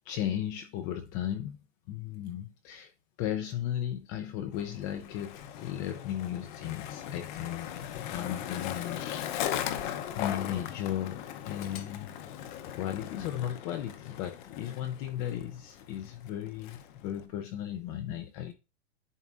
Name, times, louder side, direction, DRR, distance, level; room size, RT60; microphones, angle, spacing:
voice 1, 0.1-1.6 1.9-2.9 3.2-9.0 10.1-12.1 12.7-18.5, left 11 dB, 25° left, 0.4 m, -35 dB
Skateboard, 4.5-17.3, left 10 dB, 45° left, 0.8 m, -39 dB
11.0 x 3.9 x 2.5 m
hypercardioid pair, 135°, 35 cm